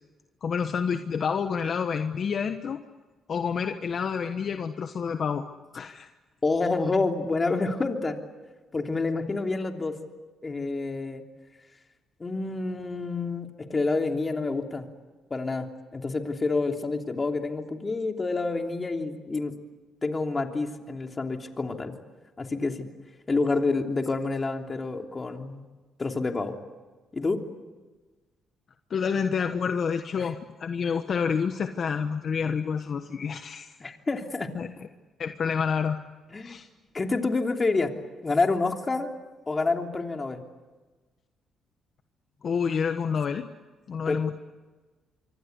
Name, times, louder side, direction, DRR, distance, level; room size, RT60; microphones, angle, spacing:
voice 1, 0.4-2.8 3.3-5.5 5.7-6.1 28.9-33.8 34.5-34.7 35.2-36.0 36.4-36.7 42.4-43.5 43.9-44.3, left 6 dB, 50° left, 7 dB, 1.3 m, -28 dB
voice 2, 6.4-8.2 8.7-10.0 10.4-11.2 12.2-14.9 15.3-19.5 20.0-21.9 22.4-22.9 23.3-25.6 26.0-26.5 27.1-27.4 30.1-30.3 33.8-34.5 36.3-36.6 36.9-37.9 38.2-39.1 39.5-40.4 44.1-44.2, left 3 dB, 30° left, 3 dB, 3.2 m, -28 dB
26.0 x 24.5 x 8.2 m, 1.3 s
cardioid pair, 90°, 0 cm